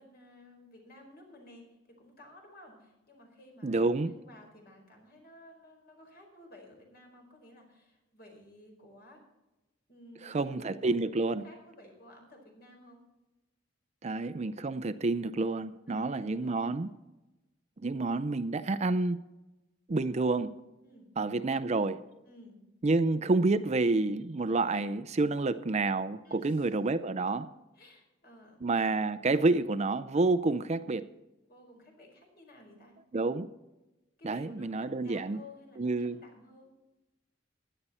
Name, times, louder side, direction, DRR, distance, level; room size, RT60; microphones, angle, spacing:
voice 1, 0.0-3.8 4.1-9.2 9.9-13.0 15.9-16.8 20.8-21.1 22.2-22.6 26.2-26.9 27.7-28.6 31.5-33.0 34.2-36.7, left 1 dB, 55° left, 4.7 m, -55 dB
voice 2, 3.6-4.1 10.2-11.4 14.0-16.9 17.8-19.3 19.9-20.5 21.2-22.0 22.8-27.5 28.6-31.1 33.1-33.5 34.2-35.4 35.8-36.2, right 3 dB, 35° right, 0.5 m, -29 dB
16.0 x 11.0 x 4.3 m
head